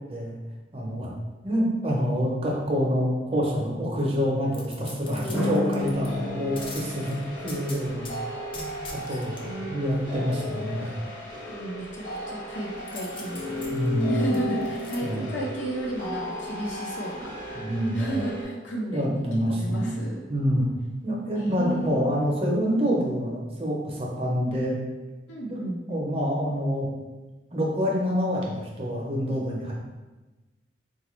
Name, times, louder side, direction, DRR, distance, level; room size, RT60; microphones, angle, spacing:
voice 1, 0.7-1.1 1.4-8.1 8.5-8.7 9.1-9.4 9.7-10.9 13.7-14.1 14.4-14.5 15.0-15.3 17.5-18.0 18.9-19.9 20.3-20.6 21.0-24.8 25.5-25.6 25.9-26.9 27.5-29.7, equal, 30° right, -2 dB, 0.6 m, -27 dB
sound 1, 4.5-6.1 6.6-8.1 8.5-9.4 12.9-15.0 15.4-15.5, left 3 dB, 30° left, 0.4 m, -42 dB
voice 2, 5.1-6.5 9.1-10.2 11.5-13.7 14.1-17.3 17.9-19.2 19.5-20.2 21.4-22.2 25.3-26.1, right 1 dB, 85° left, -3 dB, 0.8 m, -33 dB
sound 2, 5.3-18.4, left 1 dB, 45° left, 1.0 m, -34 dB
4.1 x 2.3 x 3.0 m, 1.2 s
head